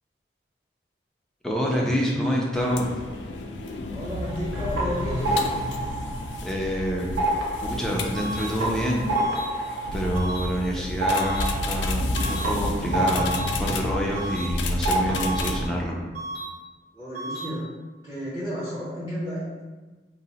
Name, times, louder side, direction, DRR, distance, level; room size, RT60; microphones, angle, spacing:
voice 1, 1.4-2.9 6.4-7.1 7.6-9.1 9.9-15.9, equal, 5° left, -3 dB, 0.4 m, -27 dB
sound 1, 2.5-15.7, left 2 dB, 85° left, 0.3 m, -31 dB
voice 2, 3.9-5.5 10.6-10.9 16.9-17.6 18.0-19.4, equal, 15° right, -11 dB, 0.7 m, -32 dB
sound 2, 4.3-6.7 7.0-14.5 14.8-15.7, right 1 dB, 85° right, 0.5 m, -29 dB
sound 3, 8.1-8.5 9.1-9.5 10.1-10.5 11.1-11.5 12.1-12.5 13.1-13.5 14.1-14.5 15.1-15.5 16.1-16.5 17.1-17.5, right 2 dB, 55° right, 1.1 m, -34 dB
2.8 x 2.0 x 4.0 m, 1.3 s
head